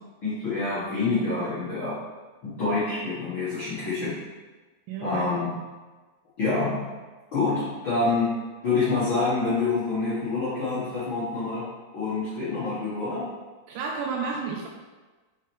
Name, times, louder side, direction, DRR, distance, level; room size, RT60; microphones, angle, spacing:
voice 1, 0.2-2.0 2.4-4.2 5.0-5.5 6.4-6.9 7.3-8.4 8.6-11.7 11.9-13.3, left 3 dB, 70° left, -10 dB, 1.2 m, -27 dB
voice 2, 4.9-5.2 13.7-14.7, right 5 dB, 85° right, 0 dB, 2.1 m, -31 dB
5.6 x 4.8 x 4.5 m, 1.3 s
omnidirectional pair, 4.5 m